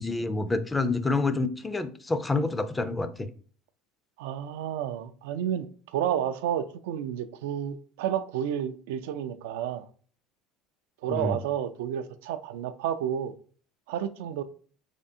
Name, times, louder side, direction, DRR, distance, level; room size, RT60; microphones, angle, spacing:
voice 1, 0.0-3.3 11.1-11.4, left 3 dB, 15° left, 0.4 m, -28 dB
voice 2, 4.2-9.9 11.0-13.3 13.9-14.4, right 10 dB, 85° right, 0.3 m, -31 dB
3.5 x 3.2 x 2.7 m
supercardioid pair, 115°, 0 cm